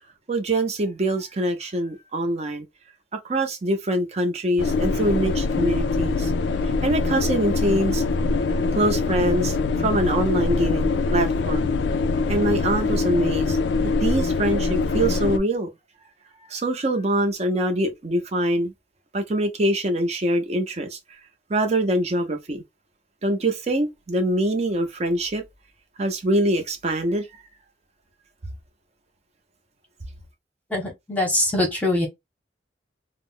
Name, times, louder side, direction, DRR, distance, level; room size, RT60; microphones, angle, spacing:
voice 1, 0.3-2.7 3.2-6.3 6.8-8.0 8.7-11.7 12.3-13.6 14.0-15.7 16.5-18.7 19.1-21.0 21.5-22.6 23.2-25.4 26.0-27.3, right 1 dB, 40° right, 0.6 m, -24 dB
sound 1, 4.6-15.4, left 3 dB, 70° left, 0.3 m, -23 dB
voice 2, 30.7-32.1, left 1 dB, 10° left, 0.9 m, -23 dB
2.4 x 2.0 x 3.5 m
head